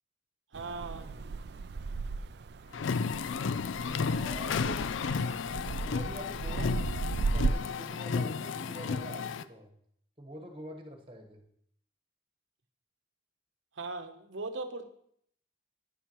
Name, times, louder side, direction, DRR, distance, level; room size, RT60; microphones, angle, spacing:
sound 1, 0.5-7.5, right 4 dB, 60° right, 0.4 m, -36 dB
voice 1, 0.5-1.1 4.6-4.8 6.5-6.7 13.8-14.8, right 3 dB, 85° right, 8 dB, 0.9 m, -39 dB
sound 2, 2.7-9.4, left 5 dB, 85° left, 0.4 m, -33 dB
voice 2, 3.9-4.7 5.8-6.7 7.3-9.7 10.2-11.4, right 1 dB, 30° right, 3 dB, 1.3 m, -46 dB
11.5 x 9.9 x 3.1 m, 0.67 s
head